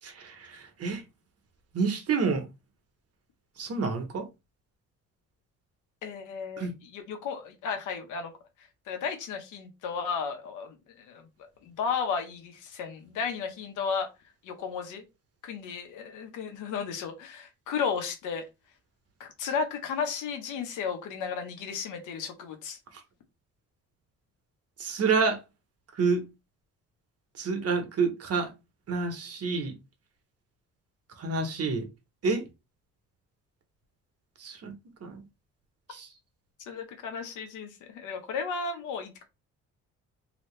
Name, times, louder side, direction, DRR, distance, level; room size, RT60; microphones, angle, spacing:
voice 1, 0.0-1.0 1.7-2.5 3.6-4.3 6.6-6.7 24.8-25.4 26.0-26.2 27.4-28.5 28.9-29.7 31.2-31.8 32.2-32.5 34.4-34.7 35.0-35.2 35.9-36.1, right 4 dB, 55° right, 1.2 m, -28 dB
voice 2, 6.0-8.3 8.9-11.2 11.6-14.1 14.4-15.0 15.4-18.4 19.2-22.8 36.7-39.2, left 6 dB, 85° left, 1.0 m, -34 dB
3.0 x 2.9 x 3.2 m
cardioid pair, 90°, 30 cm